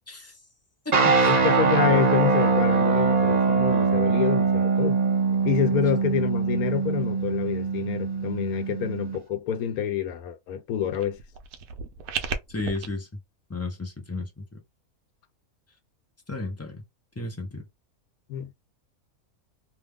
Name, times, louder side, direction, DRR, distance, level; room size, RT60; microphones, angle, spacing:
sound 1, 0.9-9.2, right 4 dB, 40° right, 0.6 m, -22 dB
voice 1, 1.3-5.0 5.4-11.2 18.3-18.5, left 9 dB, 85° left, 1.1 m, -27 dB
sound 2, 10.9-12.9, right 6 dB, 75° right, 1.0 m, -34 dB
voice 2, 12.5-13.1 13.5-14.6 16.3-16.8 17.2-17.6, left 2 dB, 20° left, 0.4 m, -33 dB
2.9 x 2.3 x 3.4 m
omnidirectional pair, 1.5 m